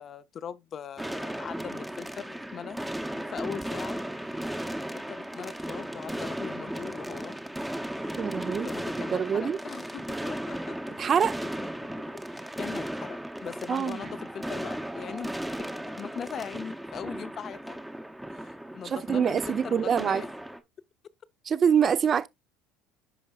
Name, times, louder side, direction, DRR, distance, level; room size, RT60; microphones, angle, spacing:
voice 1, 0.0-2.8 3.1-4.4 4.7-7.4 7.9-8.2 8.6-10.8 11.2-11.9 12.3-15.3 15.6-17.8 18.3-20.3, left 8 dB, 30° left, 0.6 m, -41 dB
sound 1, 1.0-20.6, right 1 dB, 5° right, 0.8 m, -36 dB
voice 2, 8.2-8.7 9.1-9.6 11.0-11.4 13.7-14.0 18.9-20.2 21.5-22.3, right 7 dB, 30° right, 0.5 m, -25 dB
11.0 x 5.0 x 2.4 m
cardioid pair, 150°, 0 cm